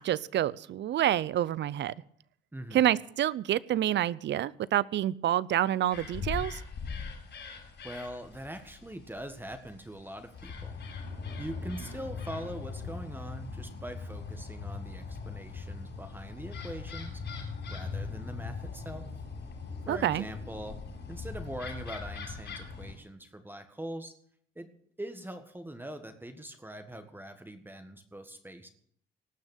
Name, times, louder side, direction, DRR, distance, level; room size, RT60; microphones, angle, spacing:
voice 1, 0.0-1.9 2.7-6.6 19.9-20.2, right 12 dB, 65° right, 21 dB, 0.6 m, -28 dB
voice 2, 2.5-2.9 7.8-10.8 11.4-17.2 17.7-19.1 19.8-24.1 24.5-24.7 25.0-28.7, right 1 dB, 10° right, 8 dB, 1.7 m, -42 dB
sound 1, 5.9-22.9, left 4 dB, 60° left, 6.6 m, -40 dB
18.5 x 6.4 x 8.9 m, 0.63 s
cardioid pair, 90°, 20 cm